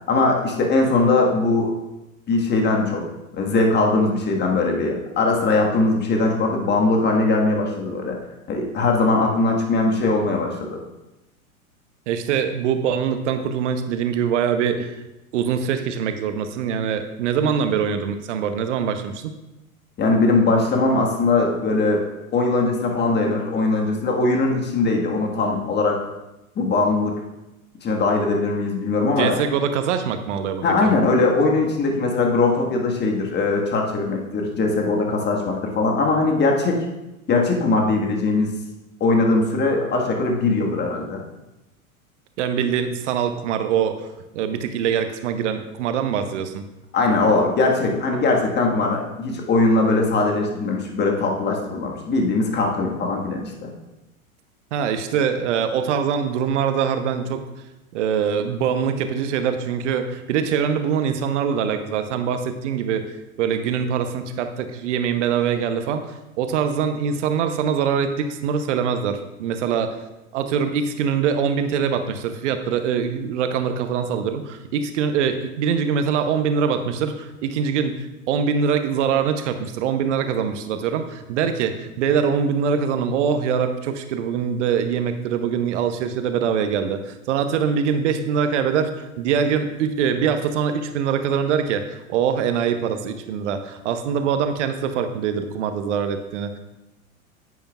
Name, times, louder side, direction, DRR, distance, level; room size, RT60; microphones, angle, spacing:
voice 1, 0.1-1.7 2.3-3.0 3.3-8.2 8.5-10.8 20.0-22.0 22.3-26.0 26.5-27.1 27.8-29.3 30.6-36.8 37.3-38.5 39.0-41.2 46.9-53.7, left 3 dB, 25° left, 1 dB, 1.5 m, -20 dB
voice 2, 12.1-15.0 15.3-19.3 29.2-30.9 42.4-44.1 44.3-46.6 54.7-57.5 57.9-63.1 63.4-70.0 70.3-96.6, right 7 dB, 55° right, 8 dB, 0.8 m, -23 dB
9.9 x 9.5 x 2.3 m, 0.96 s
figure-of-eight pair, 90°, 43 cm